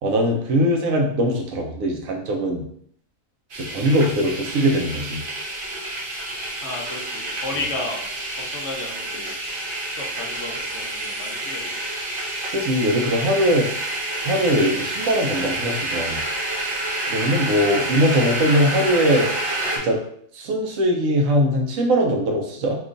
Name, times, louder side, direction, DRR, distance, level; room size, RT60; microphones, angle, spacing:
voice 1, 0.0-2.6 3.6-5.2 7.5-7.6 12.5-13.7 14.2-16.2 17.1-19.3 19.7-20.0 20.3-22.8, equal, 80° right, 1 dB, 1.1 m, -21 dB
sound 1, 3.5-19.8, right 1 dB, 50° right, 0.8 m, -28 dB
voice 2, 6.6-8.0 8.4-9.4 10.0-12.0, left 2 dB, 60° left, -1 dB, 0.9 m, -33 dB
2.9 x 2.3 x 3.7 m, 0.66 s
omnidirectional pair, 1.4 m